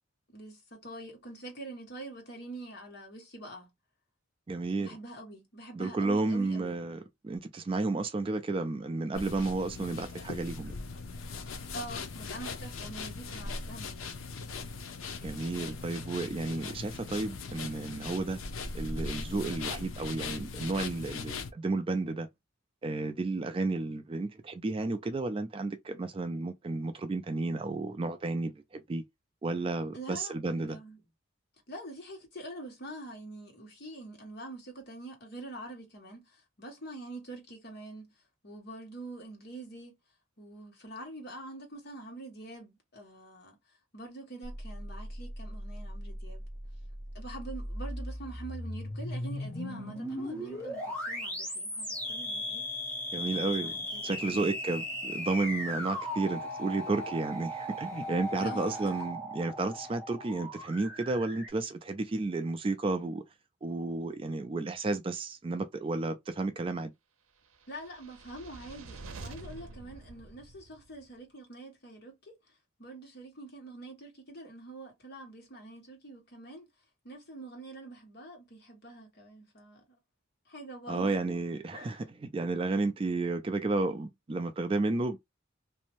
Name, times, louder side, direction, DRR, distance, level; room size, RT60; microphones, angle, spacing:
voice 1, 0.3-3.7 4.8-6.7 11.7-14.3 29.9-31.0 31.7-38.1 38.4-39.9 40.4-46.4 47.1-52.6 53.2-54.8 58.4-59.0 67.7-76.7 77.0-80.0 80.5-81.1 81.7-82.0, right 2 dB, 50° left, 1.2 m, -45 dB
voice 2, 4.5-5.0 5.7-10.8 15.2-18.4 18.7-22.3 22.8-29.0 29.4-30.8 53.1-53.8 54.0-63.2 63.6-66.9 80.9-85.2, right 3 dB, 25° right, 0.3 m, -32 dB
sound 1, 9.1-21.5, left 4 dB, 75° left, 0.5 m, -40 dB
sound 2, 44.4-61.5, left 1 dB, 5° left, 0.8 m, -38 dB
sound 3, 67.6-71.0, right 3 dB, 90° right, 0.6 m, -47 dB
2.6 x 2.1 x 2.9 m
head